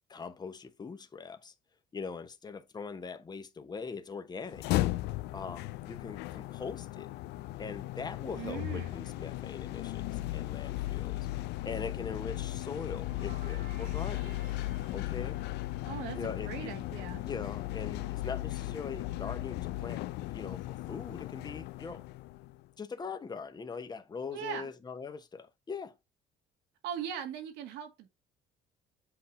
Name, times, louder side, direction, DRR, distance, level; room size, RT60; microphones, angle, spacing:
voice 1, 0.1-1.5 1.9-4.6 5.3-7.1 7.6-11.3 11.6-14.4 14.9-15.4 16.2-16.8 17.2-22.0 22.8-25.9, left 5 dB, 25° left, 0.9 m, -41 dB
sound 1, 4.4-22.6, left 16 dB, 85° left, 0.4 m, -36 dB
voice 2, 8.3-9.0 15.8-17.3 24.3-24.7 26.8-28.1, right 9 dB, 90° right, 2.0 m, -40 dB
sound 2, 12.4-17.2, right 7 dB, 60° right, 0.9 m, -58 dB
7.9 x 2.7 x 5.6 m
cardioid pair, 110°, 17 cm